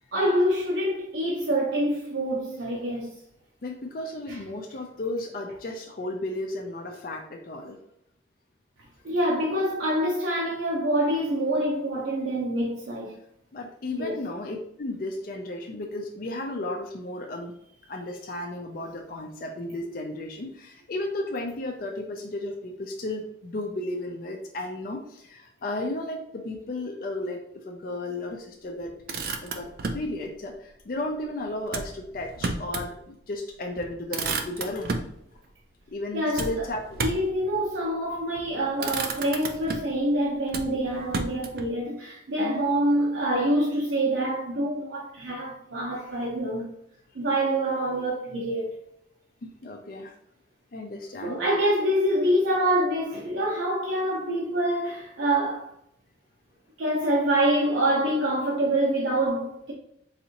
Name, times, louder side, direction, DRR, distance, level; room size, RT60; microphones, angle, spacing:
voice 1, 0.1-3.1 4.3-4.4 9.0-13.2 13.9-14.2 36.1-36.7 37.0-46.7 47.1-48.7 51.2-55.7 56.8-59.7, right 1 dB, 85° right, 0.7 m, -26 dB
voice 2, 3.6-7.8 13.5-17.5 17.9-28.9 29.4-29.7 29.9-35.0 35.9-37.1 42.4-42.6 49.4-50.1 50.7-51.4, left 2 dB, 50° left, 0.4 m, -34 dB
Motor vehicle (road), 28.8-30.1 31.7-32.9 33.3-33.4 33.7-35.1 36.4-37.4 38.2-38.5 38.8-40.0 40.5-41.7, right 3 dB, 55° right, 0.4 m, -32 dB
4.0 x 2.6 x 2.8 m
head